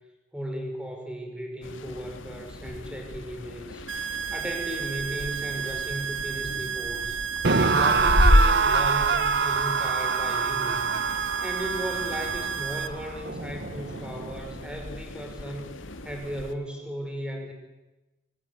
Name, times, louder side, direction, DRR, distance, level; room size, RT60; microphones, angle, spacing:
voice 1, 0.3-7.2 7.6-11.0 11.4-15.7 16.0-17.5, equal, 5° right, 3 dB, 5.5 m, -36 dB
sound 1, 1.6-16.6, left 1 dB, 85° left, 2.0 m, -31 dB
sound 2, 3.9-12.9, right 7 dB, 75° right, 1.6 m, -32 dB
sound 3, 7.4-14.6, right 4 dB, 55° right, 1.1 m, -26 dB
25.5 x 23.5 x 9.7 m, 1.1 s
head